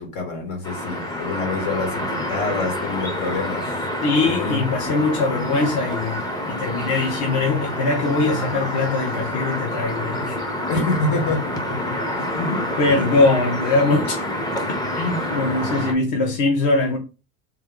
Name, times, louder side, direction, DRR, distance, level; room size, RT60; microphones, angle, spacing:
voice 1, 0.0-3.7 4.2-4.6 10.7-12.3 12.8-13.1 15.2-15.4, left 3 dB, 75° left, 2.0 m, -27 dB
sound 1, 0.6-15.9, left 1 dB, 10° left, 0.5 m, -27 dB
voice 2, 4.0-6.2 6.5-10.4 12.3-14.2 14.7-17.0, left 3 dB, 50° left, 0.9 m, -22 dB
3.5 x 2.7 x 3.6 m
cardioid pair, 150°, 38 cm